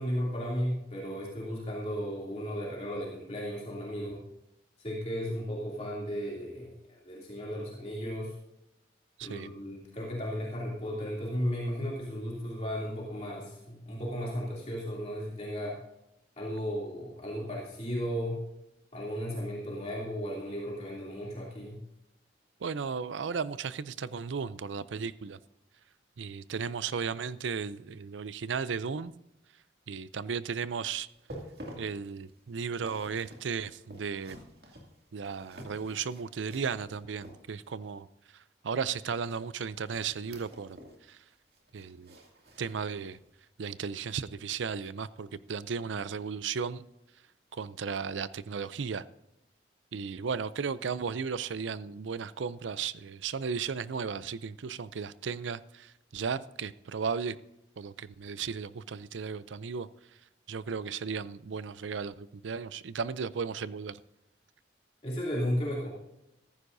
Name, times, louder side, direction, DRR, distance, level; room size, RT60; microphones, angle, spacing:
voice 1, 0.0-4.2 4.8-8.3 9.2-15.8 16.4-18.4 18.9-21.8 65.0-65.9, equal, 35° left, 2.8 m, -35 dB
voice 2, 9.2-9.5 22.6-25.4 26.2-29.1 29.9-31.1 31.8-34.4 35.1-38.1 38.3-40.8 41.1-41.2 41.7-42.1 42.6-43.2 43.6-46.8 47.5-49.0 49.9-57.4 57.8-59.9 60.5-64.0, right 6 dB, 90° right, 0.5 m, -35 dB
sound 1, 31.1-37.8 39.2-41.0 41.3-43.3 43.7-43.9 44.4-44.5, equal, 55° right, 2.4 m, -50 dB
14.5 x 14.5 x 2.7 m
head